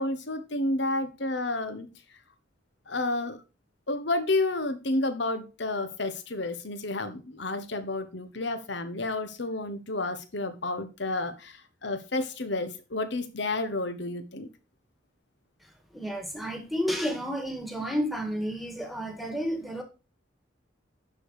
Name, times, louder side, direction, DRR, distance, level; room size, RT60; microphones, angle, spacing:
voice 1, 0.0-1.9 2.9-3.4 3.9-14.5, left 2 dB, 65° left, 1.2 m, -30 dB
voice 2, 15.9-19.8, equal, ahead, 1.7 m, -31 dB
11.0 x 5.1 x 4.9 m
head